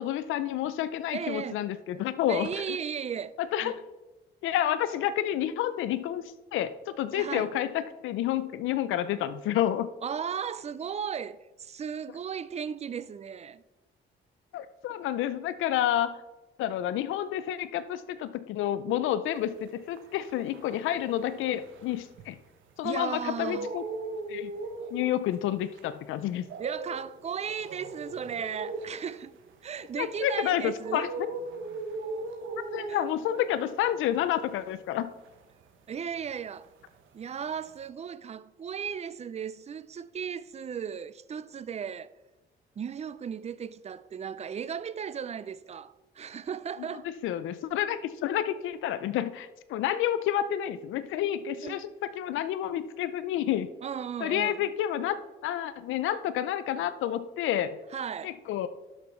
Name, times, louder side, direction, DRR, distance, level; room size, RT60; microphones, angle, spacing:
voice 1, 0.0-2.5 3.4-3.8 4.4-6.2 6.5-9.9 14.5-16.2 16.6-22.4 22.8-23.8 24.3-24.5 24.9-26.5 30.0-31.3 32.7-35.1 47.0-53.7 54.2-55.2 55.4-57.8 58.2-58.7, left 11 dB, 85° left, 0.6 m, -29 dB
voice 2, 1.1-1.6 2.3-3.4 3.6-3.8 7.1-7.5 10.0-13.6 22.8-23.7 26.6-29.3 29.6-31.0 32.9-33.0 35.9-36.7 37.1-42.1 42.8-47.1 51.6-51.9 53.8-54.7 57.9-58.3, right 7 dB, 35° right, 0.5 m, -36 dB
sound 1, 19.5-22.8 23.1-36.5 36.8-37.9, right 3 dB, 80° right, 1.2 m, -40 dB
12.0 x 5.6 x 4.4 m
cardioid pair, 90°, 20 cm